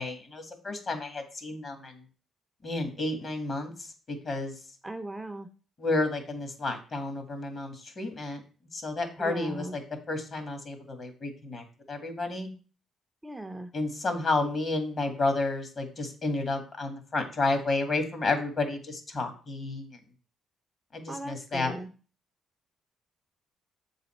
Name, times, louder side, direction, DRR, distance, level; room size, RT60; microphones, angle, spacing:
voice 1, 0.0-2.0 2.6-4.5 5.8-8.4 8.7-9.8 10.1-12.5 13.7-20.0 20.9-21.7, left 2 dB, 45° left, 6 dB, 1.8 m, -31 dB
voice 2, 4.8-5.5 9.2-9.8 13.2-13.7 21.1-21.9, right 1 dB, 10° right, 7 dB, 0.6 m, -38 dB
7.4 x 4.0 x 4.4 m, 0.37 s
cardioid pair, 90°, 0 cm